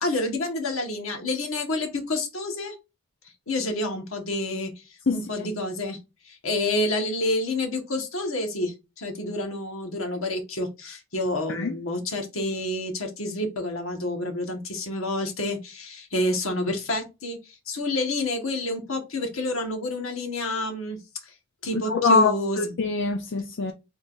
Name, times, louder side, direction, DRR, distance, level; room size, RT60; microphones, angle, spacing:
voice 1, 0.0-2.7 3.5-4.7 5.1-6.0 6.2-21.0 21.2-21.3 21.6-22.7, left 1 dB, 85° left, 1.4 m, -28 dB
voice 2, 5.1-5.5 11.5-11.7 21.7-23.7, left 4 dB, 60° left, 0.5 m, -24 dB
3.8 x 2.5 x 3.7 m
head